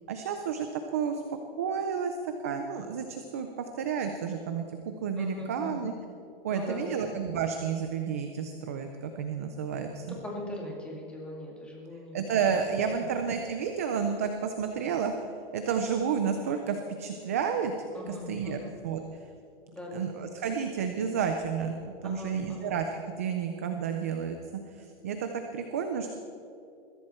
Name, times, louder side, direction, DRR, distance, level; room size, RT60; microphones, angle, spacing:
voice 1, 0.1-1.2 1.6-5.9 6.4-10.2 12.1-15.2 15.5-17.7 18.1-18.6 18.8-19.0 19.9-22.9 23.2-24.4 24.7-26.2, right 7 dB, 15° right, 6 dB, 0.3 m, -31 dB
voice 2, 5.2-5.9 6.5-7.1 10.2-12.6 12.9-13.0 17.9-18.7 19.7-20.1 22.0-22.7, left 1 dB, 5° left, -2 dB, 2.1 m, -40 dB
21.5 x 15.5 x 4.3 m, 2.6 s
hypercardioid pair, 170°, 30 cm